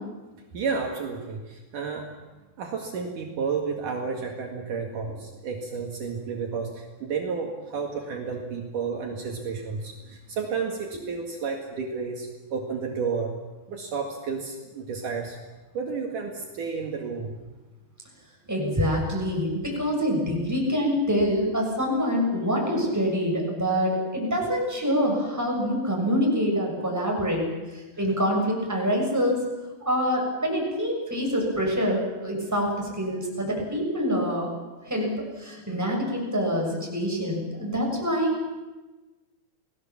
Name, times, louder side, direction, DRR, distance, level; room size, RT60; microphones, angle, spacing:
voice 1, 0.5-2.1 2.6-13.3 13.7-15.4 15.7-17.3, right 5 dB, 60° right, 1 dB, 3.3 m, -31 dB
voice 2, 18.5-27.5 28.0-29.4 29.8-34.5 34.8-38.5, equal, 5° right, -1 dB, 6.3 m, -25 dB
28.5 x 18.5 x 7.3 m, 1.2 s
omnidirectional pair, 4.2 m